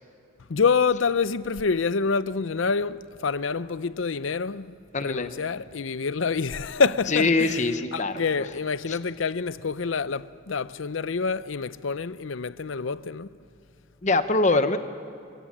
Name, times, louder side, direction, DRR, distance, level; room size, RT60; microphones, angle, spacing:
voice 1, 0.5-7.6 7.9-13.3, left 5 dB, 75° left, 0.6 m, -27 dB
voice 2, 4.9-5.3 7.1-8.2 8.9-9.0 14.0-14.8, left 3 dB, 35° left, 0.9 m, -23 dB
29.0 x 16.5 x 8.6 m
head